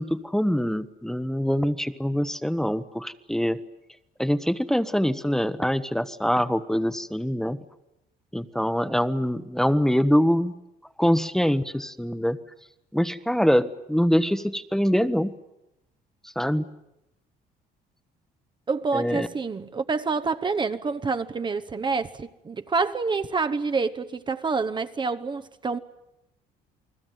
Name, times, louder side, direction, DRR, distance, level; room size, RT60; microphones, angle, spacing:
voice 1, 0.0-3.6 4.2-7.6 8.3-10.5 11.0-12.4 12.9-15.3 16.3-16.7 18.9-19.3, equal, 5° left, 1.1 m, -24 dB
voice 2, 18.7-25.8, right 4 dB, 25° right, 1.0 m, -27 dB
29.0 x 20.5 x 9.3 m
cardioid pair, 110°, 17 cm